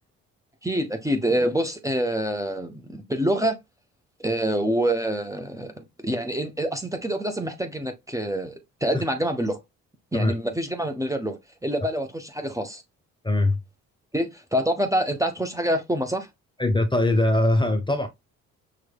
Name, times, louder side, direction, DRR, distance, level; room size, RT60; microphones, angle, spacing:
voice 1, 0.6-3.6 4.2-9.6 10.1-12.8 14.1-16.3, right 1 dB, 10° right, 1.2 m, -26 dB
voice 2, 13.2-13.6 16.6-18.1, left 2 dB, 10° left, 1.1 m, -21 dB
6.2 x 3.2 x 2.3 m
hypercardioid pair, 50°, 39 cm